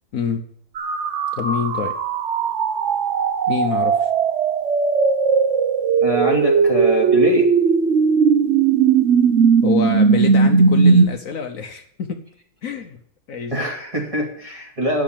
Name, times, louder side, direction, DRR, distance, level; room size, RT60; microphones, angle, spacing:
voice 1, 0.1-0.4 1.4-1.9 3.5-4.1 9.6-12.2 12.6-13.0 13.3-13.6, left 6 dB, 60° left, 5 dB, 1.2 m, -26 dB
sound 1, 0.8-11.1, right 5 dB, 55° right, 0.9 m, -17 dB
voice 2, 6.0-7.5 13.5-15.0, right 1 dB, 20° right, -1 dB, 2.8 m, -23 dB
9.7 x 6.2 x 8.8 m, 0.66 s
omnidirectional pair, 1.7 m